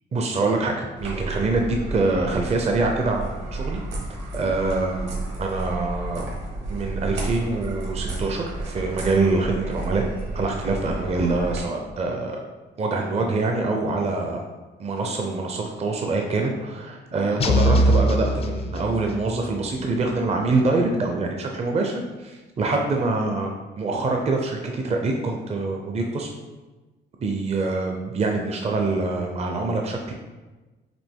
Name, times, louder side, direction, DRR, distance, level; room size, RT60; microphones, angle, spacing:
voice 1, 0.1-3.8 4.3-5.1 5.4-6.2 6.7-10.0 10.3-12.3 12.8-14.4 14.8-21.9 22.6-23.5 23.8-26.3 27.2-30.1, right 3 dB, 30° right, 2 dB, 0.5 m, -25 dB
sound 1, 1.0-11.6, right 2 dB, 65° right, 1.4 m, -32 dB
sound 2, 17.4-19.3, equal, 30° left, 0.4 m, -21 dB
5.1 x 2.9 x 3.6 m, 1.2 s
cardioid pair, 90°, 20 cm